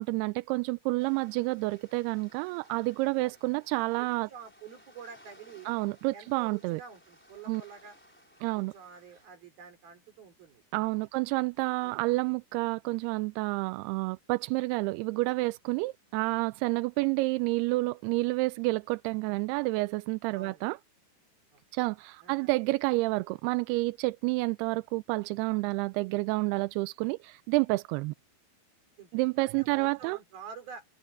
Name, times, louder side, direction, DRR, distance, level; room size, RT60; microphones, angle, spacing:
voice 1, 0.0-4.3 5.7-6.8 7.5-7.6 8.4-8.7 10.7-20.8 21.7-28.1 29.1-30.2, right 23 dB, 90° right, 2.6 m, -29 dB
sound 1, 1.0-9.3, equal, 5° left, 3.6 m, -59 dB
voice 2, 4.0-5.7 6.1-8.0 8.5-10.9 11.8-12.0 20.4-20.6 21.5-21.6 22.2-22.5 29.0-29.1 29.4-30.9, right 6 dB, 70° right, 6.3 m, -48 dB
omnidirectional pair, 4.5 m